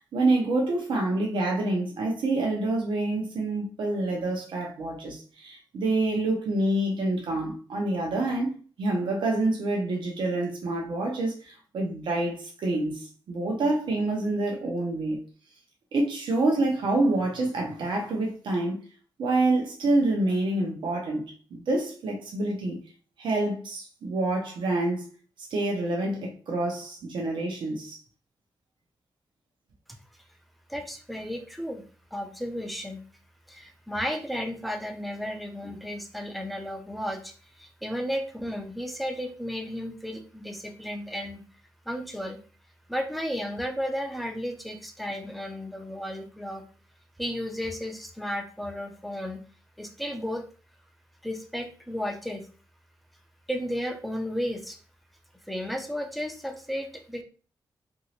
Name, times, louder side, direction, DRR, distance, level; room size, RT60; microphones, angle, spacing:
voice 1, 0.0-8.5 8.8-15.2 15.9-18.8 19.2-22.8 23.2-25.1 25.4-28.0, right 2 dB, 85° right, 0.7 m, -27 dB
voice 2, 30.7-31.8 32.1-33.0 33.5-41.4 41.9-42.4 42.9-46.6 47.2-49.4 49.8-50.4 51.2-52.4 53.5-54.8 55.5-57.2, equal, ahead, 0.4 m, -33 dB
3.0 x 2.6 x 2.8 m
wide cardioid pair, 170°, 8 cm